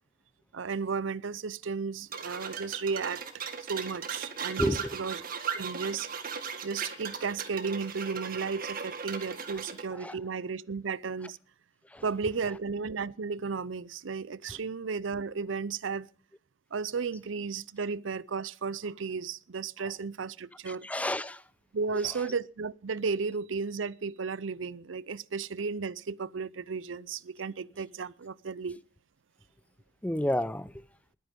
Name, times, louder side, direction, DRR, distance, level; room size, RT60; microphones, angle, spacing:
voice 1, 0.5-3.2 3.6-5.2 5.5-6.1 6.6-11.4 12.0-16.1 16.7-20.9 21.7-28.8, right 5 dB, 80° right, 0.6 m, -34 dB
sound 1, 2.1-9.9, right 6 dB, 50° right, 1.9 m, -37 dB
voice 2, 4.6-5.0 10.0-10.2 11.9-12.0 20.7-21.4 30.0-30.7, left 1 dB, 5° left, 0.7 m, -30 dB
20.5 x 9.5 x 5.3 m
head